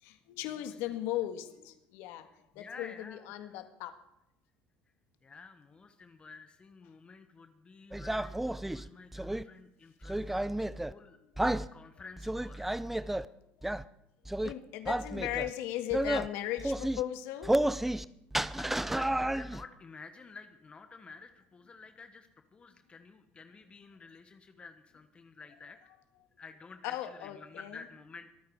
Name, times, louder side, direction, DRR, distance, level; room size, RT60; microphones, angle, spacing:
voice 1, 0.0-3.9 11.1-11.3 12.8-12.9 13.6-13.7 14.4-17.6 26.8-27.8, left 13 dB, 80° left, 9 dB, 1.8 m, -37 dB
voice 2, 2.2-3.6 5.2-11.2 11.7-12.8 18.6-25.9 26.4-28.3, left 4 dB, 25° left, 8 dB, 1.3 m, -51 dB
sound 1, 7.9-9.4 10.0-10.9 11.4-11.7 12.2-13.2 13.6-13.8 14.3-14.5 14.9-15.5 15.9-16.3 16.6-17.0 17.4-18.0 18.3-19.6, right 1 dB, 5° right, 0.5 m, -31 dB
23.0 x 9.4 x 4.8 m, 0.82 s
cardioid pair, 115°, 4 cm